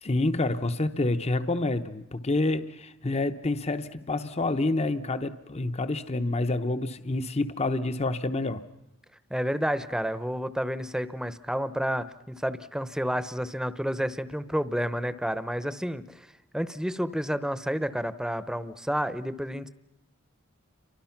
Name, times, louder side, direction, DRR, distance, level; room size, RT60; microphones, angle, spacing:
voice 1, 0.0-8.6, left 2 dB, 30° left, 11 dB, 0.8 m, -28 dB
voice 2, 9.3-16.3 16.5-19.7, equal, 5° right, 14 dB, 0.8 m, -30 dB
29.0 x 24.5 x 5.9 m, 0.92 s
head